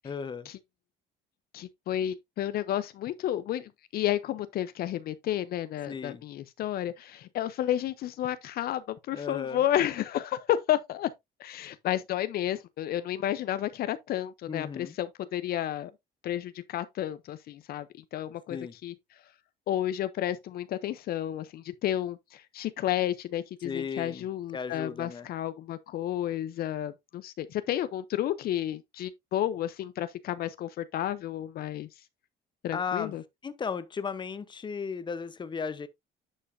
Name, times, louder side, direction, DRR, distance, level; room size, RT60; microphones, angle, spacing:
voice 1, 0.0-0.5 5.9-6.2 9.1-9.6 14.5-14.9 18.5-18.7 23.6-24.2 24.5-25.3 32.7-33.2 33.4-35.9, left 6 dB, 25° left, 0.9 m, -35 dB
voice 2, 1.5-11.1 11.4-15.9 16.2-17.9 18.1-18.9 19.7-31.9 32.6-33.2, left 12 dB, 65° left, 0.7 m, -31 dB
9.9 x 5.5 x 2.7 m
cardioid pair, 110°, 17 cm